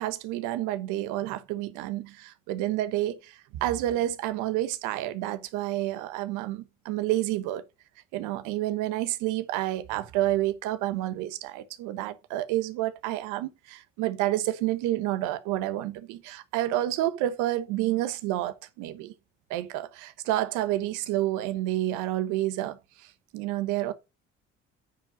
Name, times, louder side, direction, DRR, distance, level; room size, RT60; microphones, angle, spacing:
voice 1, 0.0-3.3 3.6-7.6 8.1-19.1 19.5-22.8 23.3-23.9, right 14 dB, 80° right, 1.1 m, -29 dB
9.5 x 4.9 x 5.1 m
supercardioid pair, 75°, 30 cm